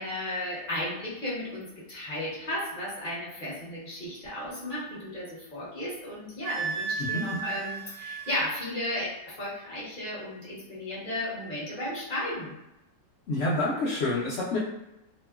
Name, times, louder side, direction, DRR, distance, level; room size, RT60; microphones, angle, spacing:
voice 1, 0.0-12.6, left 1 dB, 35° left, -8 dB, 0.9 m, -34 dB
Wind instrument woodwind instrument, 6.4-8.5, right 5 dB, 90° right, 1.3 m, -34 dB
voice 2, 13.3-14.6, left 2 dB, 65° left, -7 dB, 0.7 m, -28 dB
2.8 x 2.2 x 2.3 m, 0.91 s
omnidirectional pair, 2.0 m